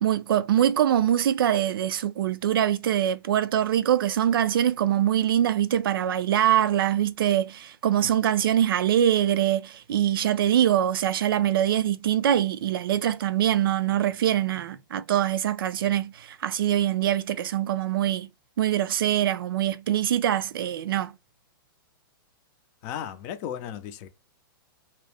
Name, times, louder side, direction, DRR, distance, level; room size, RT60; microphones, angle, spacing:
voice 1, 0.0-18.3 18.6-21.1, right 11 dB, 75° right, 0.4 m, -23 dB
voice 2, 22.8-24.1, left 9 dB, 40° left, 0.5 m, -35 dB
2.3 x 2.0 x 3.2 m
hypercardioid pair, 130°, 12 cm